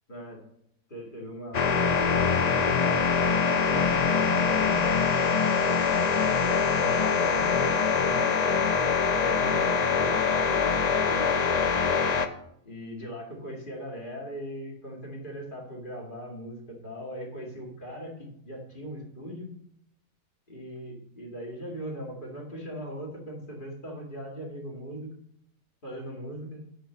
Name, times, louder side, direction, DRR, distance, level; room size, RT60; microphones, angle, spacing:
voice 1, 0.1-0.4 0.9-5.1 6.1-8.6 9.0-11.8 12.6-19.5 20.5-25.1 25.8-26.7, equal, 35° left, -1 dB, 2.4 m, -39 dB
sound 1, 1.5-12.3, left 5 dB, 55° left, 0.4 m, -24 dB
8.9 x 4.6 x 7.2 m, 0.73 s
omnidirectional pair, 1.5 m